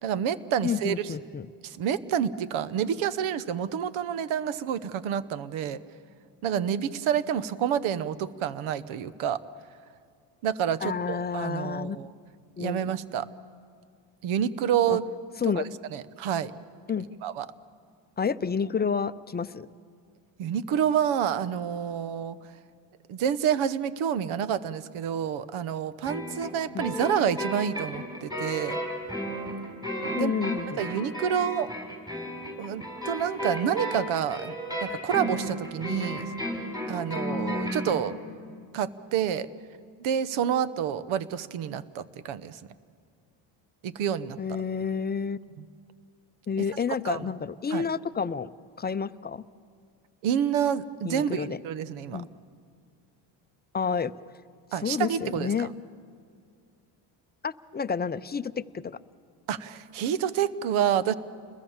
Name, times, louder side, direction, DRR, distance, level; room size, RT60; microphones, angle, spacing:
voice 1, 0.0-1.1 1.6-5.8 6.4-9.4 10.4-12.1 12.6-13.3 14.2-15.0 15.5-15.6 15.9-16.5 17.2-17.5 20.4-22.4 23.1-28.8 30.0-30.3 30.8-31.7 32.6-34.6 34.8-36.3 36.9-38.2 38.7-39.5 40.0-42.6 43.8-44.4 47.0-47.2 47.7-47.8 50.2-52.2 54.7-55.7 59.5-61.1, right 9 dB, 80° right, 15 dB, 1.1 m, -28 dB
voice 2, 0.6-1.5 10.8-12.0 12.6-12.9 14.9-15.0 15.4-15.6 16.9-17.1 18.2-19.7 26.7-26.9 30.1-30.8 44.4-45.4 46.5-48.5 48.8-49.5 51.0-51.6 52.1-52.3 53.7-54.1 54.8-55.7 57.4-59.0, left 6 dB, 20° left, 14 dB, 0.6 m, -30 dB
sound 1, 26.0-38.0, equal, 10° right, 7.2 m, -33 dB
29.5 x 21.5 x 7.3 m, 2.1 s
cardioid pair, 85°, 48 cm